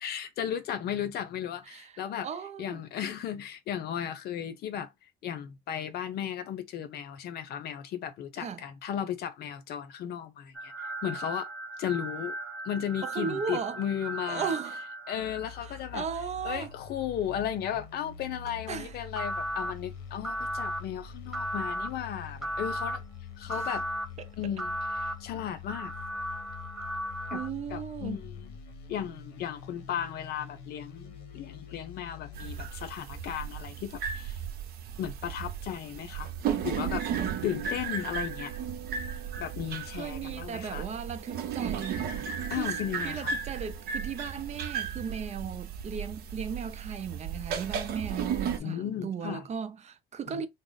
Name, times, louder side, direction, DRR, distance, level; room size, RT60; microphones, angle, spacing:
voice 1, 0.0-2.3 2.6-4.9 5.2-10.7 11.0-11.5 11.8-12.3 12.6-14.5 15.1-16.0 16.4-23.0 23.4-23.9 24.4-25.9 27.3-27.4 27.7-28.5 28.9-34.4 35.0-36.3 36.6-37.1 37.4-38.5 39.4-40.9 42.5-43.3 48.6-49.4 50.3-50.5, left 9 dB, 70° left, 0.8 m, -35 dB
voice 2, 2.2-2.8 8.4-8.7 13.0-13.8 14.3-14.8 15.9-16.7 18.7-18.9 23.5-23.7 27.3-28.2 39.9-42.0 42.5-42.7 43.0-50.5, right 7 dB, 40° right, 0.6 m, -36 dB
sound 1, 10.5-15.9 19.2-19.7 20.2-20.8 21.3-21.9 22.4-23.0 23.5-24.1 24.6-25.1 25.7-27.5, right 1 dB, ahead, 0.8 m, -36 dB
sound 2, 15.1-32.7, left 6 dB, 90° left, 1.0 m, -45 dB
sound 3, 32.3-48.6, right 7 dB, 65° right, 0.8 m, -35 dB
3.6 x 2.0 x 4.0 m
cardioid pair, 110°, 17 cm